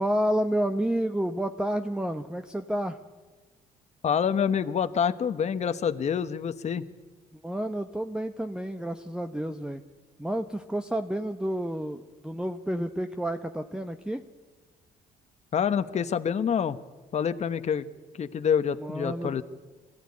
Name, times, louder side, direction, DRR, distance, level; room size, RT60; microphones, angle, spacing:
voice 1, 0.0-3.0 7.3-9.8 10.2-14.2 18.8-19.4, right 1 dB, 5° right, 8 dB, 1.0 m, -30 dB
voice 2, 4.0-6.8 15.5-16.8 17.1-17.9 18.1-19.4, left 7 dB, 45° left, 10 dB, 1.1 m, -27 dB
21.0 x 15.5 x 9.8 m, 1.3 s
cardioid pair, 85°, 16 cm